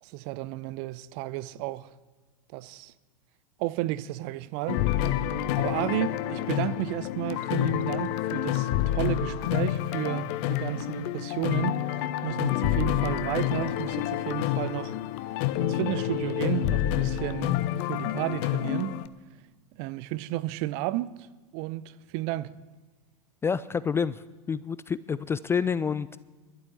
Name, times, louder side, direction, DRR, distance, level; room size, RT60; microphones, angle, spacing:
voice 1, 0.0-1.9 2.5-2.9 3.6-4.8 5.1-5.2 5.6-15.0 15.6-19.0 19.8-21.3 21.5-22.5, right 16 dB, 45° right, 0.6 m, -32 dB
sound 1, 4.7-19.1, left 12 dB, 50° left, 0.8 m, -28 dB
voice 2, 23.4-26.2, left 6 dB, 15° left, 0.3 m, -28 dB
12.0 x 7.9 x 9.8 m
figure-of-eight pair, 90°, 19 cm